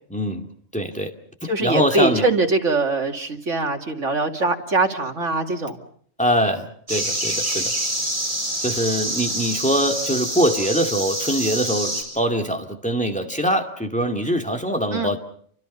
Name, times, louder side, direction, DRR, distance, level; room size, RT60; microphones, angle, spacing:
voice 1, 0.1-0.5 0.7-1.1 1.4-2.3 6.2-7.7 8.6-15.2, equal, 5° left, 3 dB, 2.3 m, -23 dB
voice 2, 1.4-5.8 14.9-15.1, right 3 dB, 70° right, 4 dB, 2.7 m, -22 dB
sound 1, 6.9-12.0, right 1 dB, 40° right, 8.0 m, -26 dB
29.5 x 25.5 x 5.5 m, 0.62 s
omnidirectional pair, 1.3 m